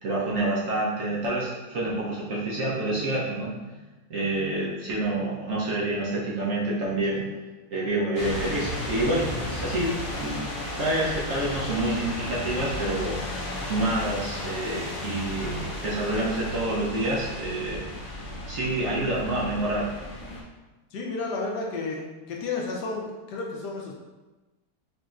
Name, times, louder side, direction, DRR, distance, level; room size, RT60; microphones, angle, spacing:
voice 1, 0.0-3.7 4.1-7.3 7.7-9.9 10.2-10.4 10.8-13.3 13.6-17.8 18.5-19.9, right 2 dB, 60° right, -6 dB, 1.0 m, -28 dB
sound 1, 8.1-20.4, left 1 dB, 55° left, 0.6 m, -34 dB
voice 2, 20.9-24.0, left 3 dB, 75° left, -1 dB, 1.2 m, -32 dB
5.2 x 2.7 x 2.4 m, 1.2 s
omnidirectional pair, 1.9 m